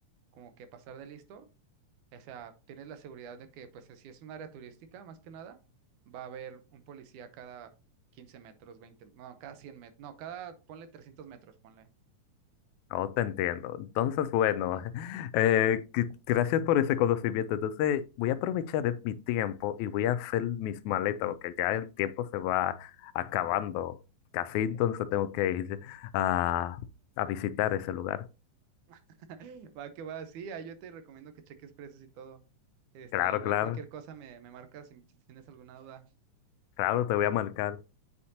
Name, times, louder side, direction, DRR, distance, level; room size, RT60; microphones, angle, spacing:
voice 1, 0.3-1.5 2.1-5.6 6.1-7.7 8.1-11.9 28.9-29.0 29.3-32.4 32.9-36.1, right 7 dB, 80° right, 2.2 m, -46 dB
voice 2, 12.9-24.0 24.3-26.8 27.2-28.3 33.1-33.8 36.8-37.8, left 11 dB, 80° left, 1.8 m, -29 dB
8.5 x 4.4 x 2.8 m
omnidirectional pair, 3.6 m